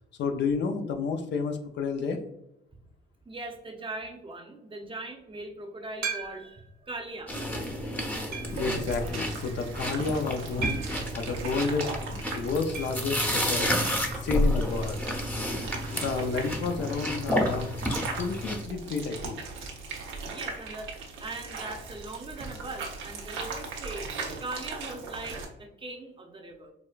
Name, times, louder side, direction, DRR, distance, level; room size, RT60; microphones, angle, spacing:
voice 1, 0.2-2.2 8.5-10.8 11.1-13.8 14.2-15.0 15.9-17.7 18.2-19.4, left 4 dB, 65° left, 6 dB, 0.5 m, -30 dB
voice 2, 3.3-7.3 20.3-24.1 24.4-26.7, right 2 dB, 25° right, 3 dB, 0.7 m, -40 dB
sound 1, 6.0-6.7 7.3-7.4 8.3-8.7 10.6-11.1 12.7-13.0 13.3-13.4 13.7-13.8 15.8-15.9, right 5 dB, 50° right, 1.0 m, -35 dB
sound 2, 7.3-18.6, equal, 10° left, 0.8 m, -31 dB
sound 3, 8.4-25.4, right 4 dB, 80° right, 0.8 m, -39 dB
4.8 x 2.2 x 2.4 m, 0.83 s
cardioid pair, 90°, 20 cm